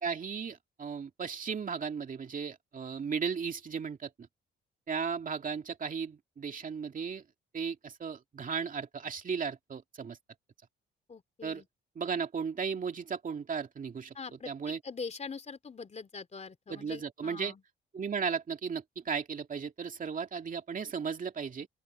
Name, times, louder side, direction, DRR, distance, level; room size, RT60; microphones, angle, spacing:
voice 1, 0.0-4.3 4.9-7.2 7.5-10.2 11.4-11.6 12.0-14.1 14.5-14.8 16.7-17.5 17.9-21.7, right 6 dB, 45° right, 2.5 m, -35 dB
voice 2, 11.1-11.7 14.1-14.5 14.8-17.6, left 5 dB, 35° left, 3.1 m, -43 dB
open air
cardioid pair, 90°, 20 cm